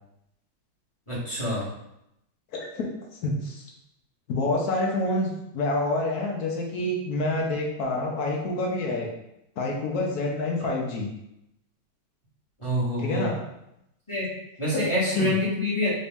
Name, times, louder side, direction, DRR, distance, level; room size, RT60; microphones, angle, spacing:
voice 1, 1.1-1.7 12.6-13.3 14.1-14.3 14.6-15.9, left 1 dB, 20° left, -8 dB, 1.1 m, -26 dB
voice 2, 2.5-2.9 3.2-3.6 4.3-9.1 9.6-11.1 13.0-13.3 14.7-14.8 15.1-15.3, left 2 dB, 60° left, -1 dB, 1.0 m, -27 dB
4.0 x 2.7 x 3.4 m, 0.83 s
omnidirectional pair, 2.2 m